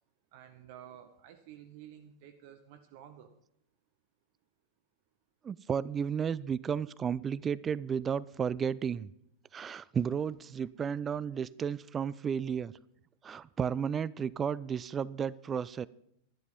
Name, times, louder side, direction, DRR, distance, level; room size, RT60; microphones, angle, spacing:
voice 1, 0.3-3.3, right 10 dB, 50° right, 7 dB, 1.0 m, -52 dB
voice 2, 5.4-9.1 9.5-12.7 13.2-15.9, right 7 dB, 20° right, 20 dB, 0.4 m, -33 dB
12.5 x 11.0 x 5.3 m, 0.73 s
figure-of-eight pair, 90°, 0 cm